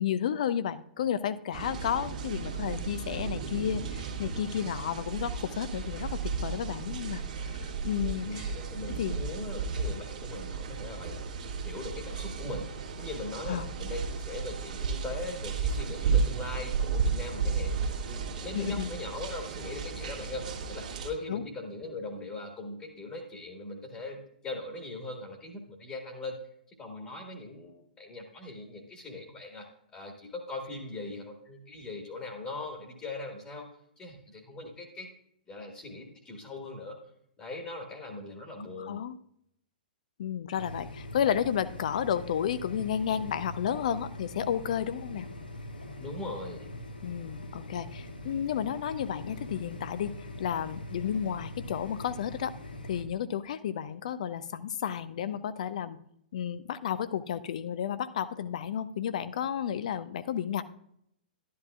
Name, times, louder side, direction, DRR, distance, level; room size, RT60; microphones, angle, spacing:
voice 1, 0.0-7.2 7.6-8.5 9.0-9.2 13.5-13.7 18.5-18.9 21.3-21.4 38.8-39.2 40.2-45.3 47.0-50.1 50.4-52.5 52.9-56.0 56.3-60.6, left 9 dB, 50° left, 14 dB, 0.6 m, -32 dB
sound 1, 1.5-21.1, right 5 dB, 50° right, 1.7 m, -34 dB
voice 2, 8.2-11.3 11.6-26.4 26.8-33.7 34.0-35.1 35.5-37.0 37.4-39.0 46.0-46.7 48.9-49.4, left 2 dB, 20° left, 2 dB, 1.5 m, -40 dB
sound 2, 40.6-53.0, left 1 dB, 80° left, 1.3 m, -43 dB
12.0 x 11.0 x 2.4 m, 0.73 s
figure-of-eight pair, 115°, 5 cm